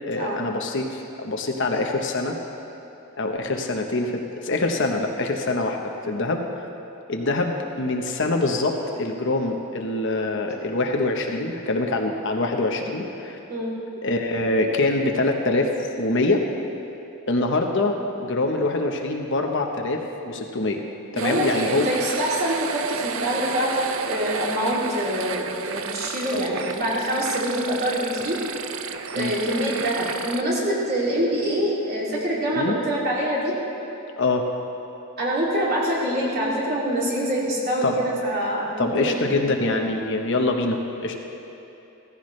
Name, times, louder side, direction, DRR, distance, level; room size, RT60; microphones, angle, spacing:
voice 1, 0.1-2.4 3.2-6.4 7.1-13.4 14.0-15.7 16.0-16.4 17.3-20.8 21.1-21.9 26.3-26.4 29.1-29.3 32.5-32.7 34.2-34.5 37.8-38.0 38.8-41.1, left 2 dB, 60° left, 2 dB, 1.1 m, -24 dB
voice 2, 21.1-28.4 29.1-33.6 35.2-39.2, equal, 45° right, -5 dB, 2.9 m, -25 dB
sound 1, 21.2-30.4, right 6 dB, 65° right, 0.5 m, -32 dB
16.5 x 14.5 x 3.3 m, 3.0 s
head